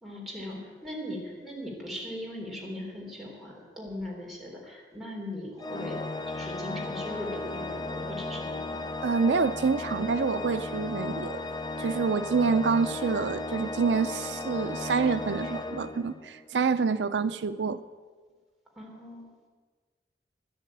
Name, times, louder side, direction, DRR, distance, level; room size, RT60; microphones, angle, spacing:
voice 1, 0.0-6.0 6.3-8.9 18.8-19.3, left 1 dB, ahead, -4 dB, 3.7 m, -39 dB
Organ, 5.6-16.5, left 2 dB, 25° left, 0.5 m, -35 dB
voice 2, 9.0-11.4 11.8-17.8, right 5 dB, 80° right, 12 dB, 0.5 m, -27 dB
13.0 x 10.0 x 8.8 m, 1.4 s
head